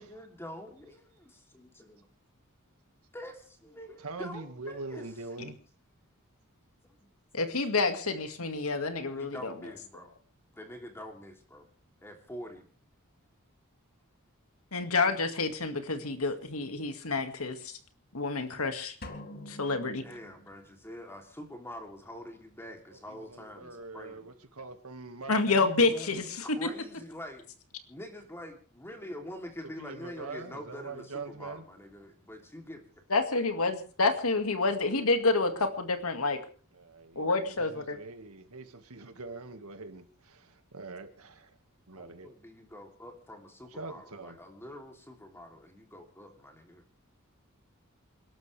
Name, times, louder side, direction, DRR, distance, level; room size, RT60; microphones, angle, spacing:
voice 1, 0.0-1.0 1.5-2.1 3.1-5.1 6.8-7.1 9.1-10.1 10.5-11.7 12.0-12.6 20.0-24.3 25.9-27.5 27.9-32.9 41.9-46.8, equal, 10° left, 3.2 m, -45 dB
voice 2, 4.0-5.6 22.9-25.7 29.8-31.6 36.7-41.5 41.9-42.3 43.8-44.4, right 3 dB, 80° right, 2.0 m, -43 dB
voice 3, 7.3-9.5 14.7-17.7 18.1-18.9 19.5-20.0 25.3-26.7 33.1-36.4 37.2-38.0, left 3 dB, 75° left, 2.2 m, -28 dB
sound 1, 19.0-20.8, left 1 dB, 45° left, 2.2 m, -46 dB
28.5 x 12.5 x 3.5 m
head